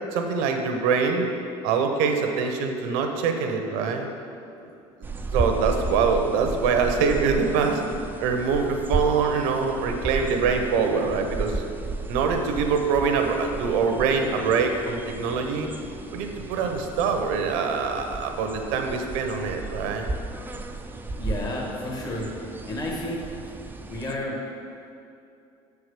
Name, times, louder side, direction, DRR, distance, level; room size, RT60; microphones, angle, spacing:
voice 1, 0.1-1.3 1.6-4.1 5.3-7.8 8.2-11.6 12.1-15.7 16.1-20.1, right 5 dB, 80° right, 4 dB, 0.9 m, -24 dB
sound 1, 5.0-24.1, right 3 dB, 15° right, 0.5 m, -34 dB
voice 2, 21.2-22.3 22.7-23.2 23.9-24.4, left 1 dB, 30° left, -2 dB, 1.6 m, -31 dB
6.9 x 4.8 x 6.7 m, 2.6 s
supercardioid pair, 100°, 13 cm